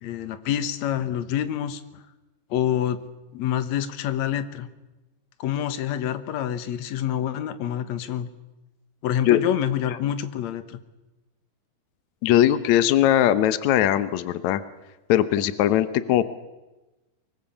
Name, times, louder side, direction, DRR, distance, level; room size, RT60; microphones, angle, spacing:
voice 1, 0.0-1.8 2.5-3.0 3.3-4.7 5.4-8.3 9.0-10.8, left 10 dB, 65° left, 10 dB, 1.9 m, -27 dB
voice 2, 12.2-14.6 15.1-16.2, left 12 dB, 80° left, 12 dB, 1.6 m, -20 dB
24.5 x 23.5 x 7.2 m, 1.1 s
omnidirectional pair, 4.6 m